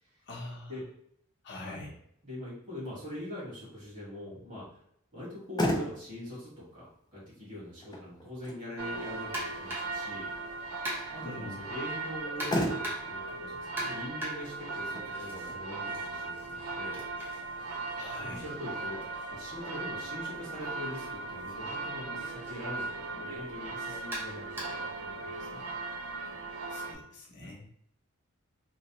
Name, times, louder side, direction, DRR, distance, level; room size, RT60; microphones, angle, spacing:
voice 1, 0.3-0.8 1.4-1.9 11.2-11.6 17.9-18.4 26.7-27.6, left 2 dB, 50° left, -2 dB, 0.8 m, -44 dB
voice 2, 1.6-1.9 2.2-4.7 5.1-10.3 11.1-17.0 18.2-25.6 27.3-27.6, left 1 dB, 35° right, -7 dB, 1.5 m, -43 dB
Motor vehicle (road), 5.2-18.1, equal, 20° left, 0.4 m, -39 dB
sound 1, 8.8-26.9, right 3 dB, 80° right, 0.4 m, -38 dB
sound 2, 9.3-10.0 10.9-11.3 12.4-13.2 13.8-15.5 15.9-19.7 20.8-21.0 21.4-21.5 22.5-22.6 24.1-24.9, right 1 dB, 10° right, 0.8 m, -41 dB
3.0 x 2.0 x 2.9 m, 0.70 s
head